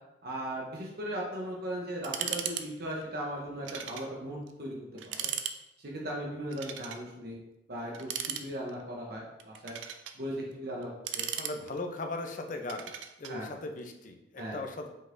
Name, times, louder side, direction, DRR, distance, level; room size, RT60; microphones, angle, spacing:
voice 1, 0.2-5.3 5.8-7.4 7.7-8.1 8.4-9.8 10.1-11.3 13.3-13.5 14.4-14.6, right 1 dB, 55° right, -2 dB, 0.8 m, -38 dB
sound 1, 2.0-2.7 2.9-3.0 3.7-4.1 4.5-4.6 5.0-5.6 6.5-7.0 7.9-8.8 9.4-10.2 10.8-12.0 12.7-13.4, right 9 dB, 85° right, 0.4 m, -37 dB
voice 2, 11.3-12.9 13.2-14.9, left 2 dB, 45° left, 4 dB, 0.5 m, -38 dB
5.3 x 3.8 x 2.6 m, 0.93 s
head